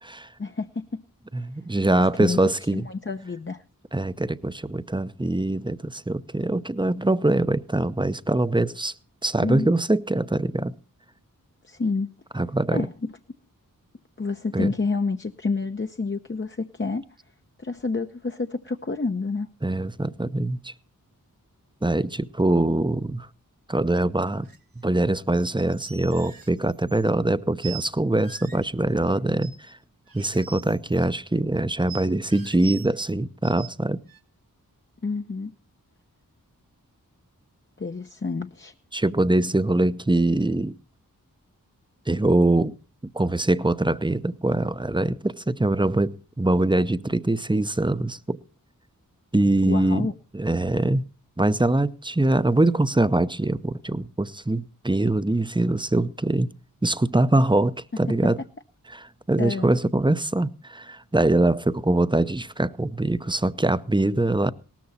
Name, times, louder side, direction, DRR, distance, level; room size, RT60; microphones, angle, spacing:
voice 1, 0.4-1.0 1.9-2.4 2.7-3.6 9.4-9.7 11.6-12.1 12.7-13.1 14.2-17.0 17.6-19.5 35.0-35.5 37.8-38.7 49.6-50.1 59.4-59.7, left 4 dB, 35° left, 0.9 m, -29 dB
voice 2, 1.3-2.8 3.9-8.9 9.2-10.7 12.3-12.9 14.5-14.7 19.6-20.7 21.8-23.3 23.7-24.5 24.8-29.8 30.1-34.0 38.9-40.8 42.1-42.8 43.1-48.4 49.3-51.0 51.4-56.5 56.8-58.4 58.9-64.5, right 2 dB, 15° right, 0.8 m, -23 dB
sound 1, 24.4-24.6 25.4-27.1 27.6-27.9 28.2-28.7 29.4-29.7 30.1-31.1 31.9-33.1 33.4-33.7 34.1-34.2, right 7 dB, 75° right, 1.9 m, -43 dB
18.0 x 13.5 x 4.2 m
wide cardioid pair, 55°, 35 cm